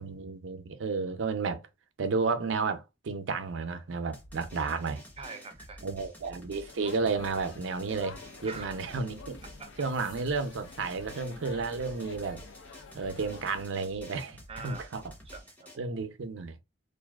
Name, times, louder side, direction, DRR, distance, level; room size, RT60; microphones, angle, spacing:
voice 1, 0.0-1.6 2.0-5.0 5.8-9.4 9.8-12.4 12.9-15.0 15.8-16.6, right 4 dB, 85° right, 0.5 m, -32 dB
Drum, 4.1-15.8, left 1 dB, 10° left, 0.7 m, -50 dB
voice 2, 5.2-5.8 8.4-8.7 9.6-9.8 14.5-14.9 15.3-15.7, right 5 dB, 30° right, 0.5 m, -44 dB
sound 1, 6.6-13.6, left 4 dB, 80° left, 0.5 m, -49 dB
2.5 x 2.3 x 2.3 m
head